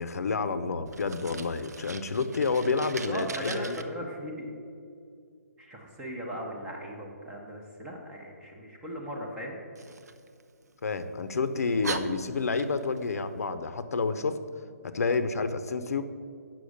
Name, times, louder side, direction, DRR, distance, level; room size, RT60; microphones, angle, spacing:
voice 1, 0.0-3.8 10.8-14.4 14.8-16.0, left 4 dB, 70° left, 11 dB, 0.7 m, -29 dB
Fire, 0.9-3.8 9.8-11.0 11.5-11.6 11.8-13.0, right 4 dB, 85° right, 0.7 m, -40 dB
voice 2, 2.8-4.6 5.6-9.6, equal, 5° right, -1 dB, 0.7 m, -38 dB
8.6 x 6.1 x 6.4 m, 2.4 s
hypercardioid pair, 175°, 9 cm